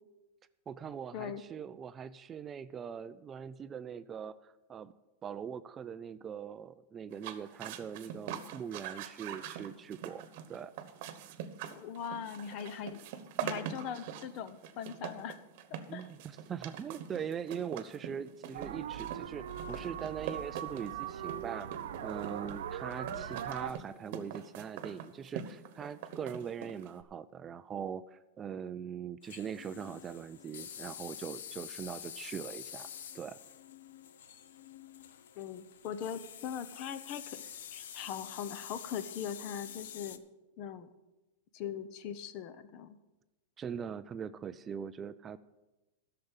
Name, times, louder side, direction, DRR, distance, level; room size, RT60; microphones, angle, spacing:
voice 1, 0.7-4.9 5.2-10.7 15.9-32.9 33.1-33.4 43.6-45.4, right 7 dB, 20° right, 14 dB, 0.3 m, -41 dB
sound 1, 7.1-27.0, right 9 dB, 55° right, 1.1 m, -43 dB
voice 2, 11.7-13.0 13.4-15.4 15.9-16.1 23.1-23.3 35.3-37.4 37.7-40.2 40.6-40.9 41.5-43.0, left 8 dB, 45° left, 13 dB, 0.8 m, -40 dB
sound 2, 18.5-23.7, right 9 dB, 80° right, 0.6 m, -40 dB
sound 3, 29.2-40.2, left 9 dB, 80° left, 0.7 m, -47 dB
11.5 x 6.7 x 7.1 m, 1.1 s
supercardioid pair, 140°, 0 cm